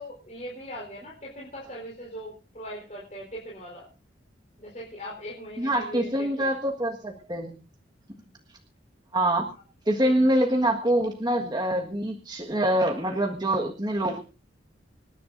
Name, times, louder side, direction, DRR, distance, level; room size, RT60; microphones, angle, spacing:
voice 1, 0.0-3.9 4.6-6.1 6.4-6.5 10.0-10.1, equal, 40° left, -4 dB, 4.4 m, -40 dB
voice 2, 5.6-7.6 9.1-9.5 9.8-14.2, right 1 dB, 20° right, 1 dB, 1.6 m, -25 dB
26.0 x 10.5 x 2.6 m, 0.34 s
head